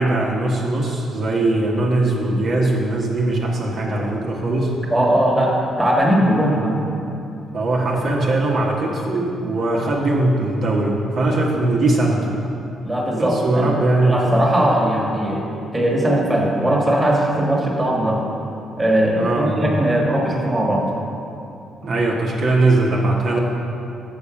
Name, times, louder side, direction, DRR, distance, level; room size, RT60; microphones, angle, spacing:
voice 1, 0.0-4.7 7.5-12.2 13.2-14.3 19.2-19.8 21.8-23.4, right 2 dB, 60° right, -3 dB, 1.2 m, -20 dB
voice 2, 4.9-6.8 12.8-13.7 14.0-15.5 15.7-18.2 18.8-20.9, right 1 dB, 15° right, -3 dB, 1.5 m, -19 dB
7.2 x 6.4 x 4.9 m, 2.7 s
cardioid pair, 90°, 0 cm